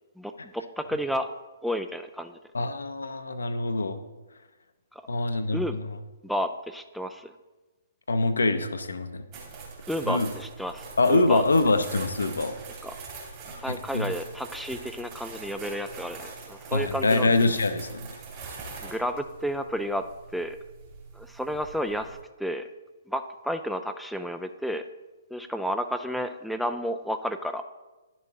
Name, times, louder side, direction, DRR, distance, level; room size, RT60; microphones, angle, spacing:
voice 1, 0.2-1.3 1.6-2.4 4.9-5.1 5.5-5.8 6.2-7.3 9.9-11.4 12.8-12.9 13.6-17.3 18.8-20.1 20.3-20.6 21.1-22.7 23.1-24.8 25.3-27.6, equal, ahead, 7 dB, 0.3 m, -31 dB
voice 2, 2.5-4.0 5.1-6.0 8.1-9.2 10.1-10.3 11.0-12.5 13.7-14.1 16.7-18.2, left 2 dB, 75° left, 9 dB, 0.6 m, -25 dB
sound 1, 9.3-22.2, right 4 dB, 35° right, 2.4 m, -43 dB
10.5 x 6.9 x 2.8 m, 1.2 s
figure-of-eight pair, 125°, 0 cm